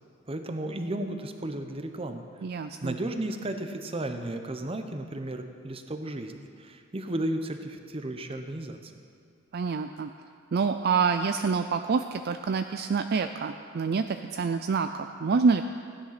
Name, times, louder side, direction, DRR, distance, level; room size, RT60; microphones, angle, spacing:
voice 1, 0.3-2.2 2.8-8.9, right 1 dB, 30° right, 7 dB, 0.9 m, -34 dB
voice 2, 2.4-3.0 9.5-10.1 10.5-15.6, right 5 dB, 50° right, 8 dB, 0.4 m, -27 dB
15.5 x 10.0 x 5.9 m, 2.3 s
head